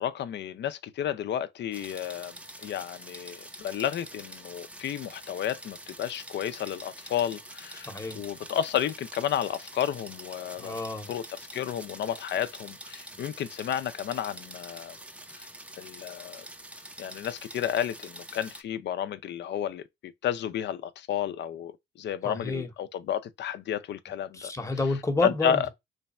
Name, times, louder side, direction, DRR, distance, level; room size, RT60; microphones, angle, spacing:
voice 1, 0.0-10.7 11.1-15.0 15.3-15.5 15.8-16.5 17.0-19.8 20.2-21.7 22.0-24.5 25.2-25.7, left 10 dB, 60° left, 0.5 m, -32 dB
sound 1, 1.7-18.6, right 1 dB, 5° right, 0.5 m, -46 dB
voice 2, 7.8-8.2 10.6-11.1 22.2-22.7 24.3-25.7, left 2 dB, 15° left, 0.9 m, -30 dB
3.3 x 2.2 x 4.1 m
cardioid pair, 90°, 20 cm